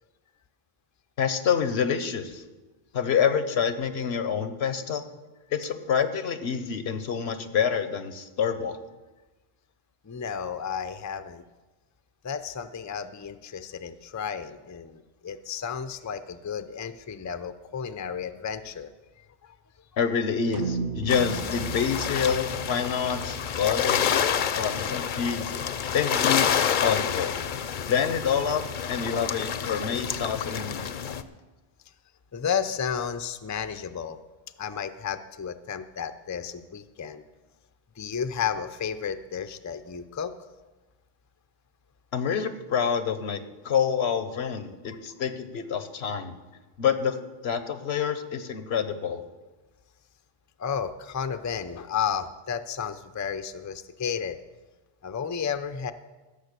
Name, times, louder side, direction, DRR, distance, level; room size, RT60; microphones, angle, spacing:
voice 1, 1.2-2.4 2.9-5.0 5.5-8.8 20.0-24.0 24.6-25.5 25.9-26.5 26.8-27.4 27.9-30.9 42.1-43.4 43.6-46.4 46.8-47.2 47.4-49.2, left 7 dB, 90° left, 10 dB, 1.2 m, -27 dB
voice 2, 10.0-11.4 12.2-18.9 19.4-19.5 31.0-31.2 32.3-34.2 34.6-37.2 38.0-40.3 50.6-54.4 55.0-55.9, left 7 dB, 30° left, 11 dB, 0.3 m, -32 dB
sound 1, 20.5-25.0, right 5 dB, 55° right, 0.8 m, -36 dB
sound 2, 21.1-31.2, left 8 dB, 55° left, 0.7 m, -28 dB
15.0 x 6.5 x 6.7 m, 1.2 s
omnidirectional pair, 1.1 m